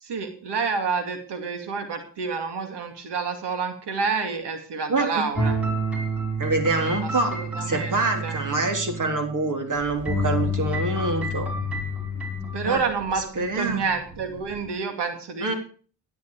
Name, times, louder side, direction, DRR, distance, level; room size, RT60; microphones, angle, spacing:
voice 1, 0.0-5.6 7.0-8.3 12.5-15.5, right 5 dB, 75° right, 6 dB, 2.6 m, -29 dB
voice 2, 4.9-5.2 6.4-11.5 12.6-12.8 13.2-13.8 15.4-15.5, right 3 dB, 45° right, 5 dB, 3.6 m, -26 dB
sound 1, 5.4-9.7 10.1-12.7, equal, 5° right, 5.0 m, -28 dB
sound 2, 9.7-14.7, equal, 25° right, 4.0 m, -42 dB
13.5 x 10.5 x 4.8 m, 0.40 s
cardioid pair, 75°, 41 cm